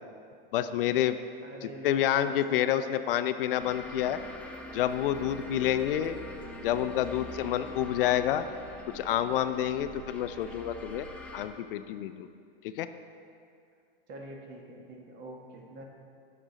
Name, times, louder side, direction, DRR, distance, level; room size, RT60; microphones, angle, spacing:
voice 1, 0.5-1.2 1.8-4.2 4.7-6.2 6.6-8.4 8.9-11.1 11.3-12.3 12.6-12.9, left 11 dB, 65° left, 11 dB, 0.4 m, -28 dB
voice 2, 1.4-3.0 14.1-15.8, right 1 dB, 35° right, 0 dB, 1.3 m, -45 dB
sound 1, 3.6-11.5, left 1 dB, 5° left, 0.6 m, -44 dB
8.7 x 6.1 x 3.9 m, 2.4 s
hypercardioid pair, 120°, 30 cm